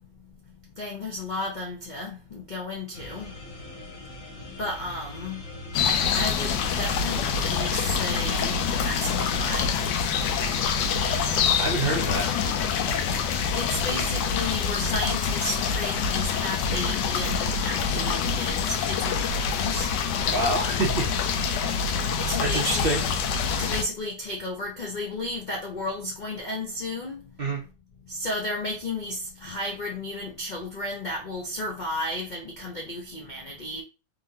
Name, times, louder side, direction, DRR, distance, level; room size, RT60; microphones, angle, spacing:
voice 1, 0.8-3.3 4.4-5.4 6.1-9.8 13.5-19.9 22.3-22.9 23.6-27.2 28.1-33.8, left 1 dB, 60° left, 0.5 m, -33 dB
sound 1, 2.9-14.4, left 2 dB, 40° left, 1.2 m, -39 dB
sound 2, 5.7-23.8, left 6 dB, 90° left, 1.2 m, -26 dB
voice 2, 11.6-12.3 20.3-21.3 22.4-23.0 27.4-27.6, right 2 dB, 55° right, 0.6 m, -27 dB
3.7 x 3.4 x 2.6 m
omnidirectional pair, 1.8 m